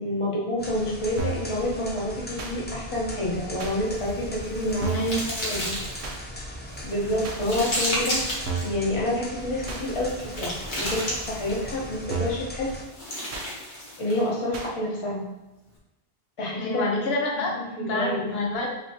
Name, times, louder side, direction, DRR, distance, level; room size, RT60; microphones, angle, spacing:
voice 1, 0.0-5.0 5.5-5.7 6.8-8.2 8.6-12.8 14.0-15.2 16.4-16.9 17.4-18.3, left 1 dB, 30° left, -4 dB, 0.9 m, -28 dB
sound 1, 0.6-12.8, equal, 15° left, 0.5 m, -39 dB
sound 2, 1.2-1.5 2.4-2.6 3.6-3.8 4.8-5.2 6.0-6.2 7.2-7.4 8.5-8.8 9.7-9.8 10.9-11.1 12.1-12.5 13.3-13.5 14.5-14.7, right 4 dB, 90° right, 1.0 m, -32 dB
sound 3, 3.9-6.2 6.7-8.7 9.6-11.7 12.7-14.3, equal, 50° left, 1.3 m, -32 dB
voice 2, 4.9-5.5 16.6-17.5 17.8-18.7, left 2 dB, 70° left, -1 dB, 1.1 m, -27 dB
5.2 x 2.8 x 2.8 m, 1.0 s
omnidirectional pair, 1.1 m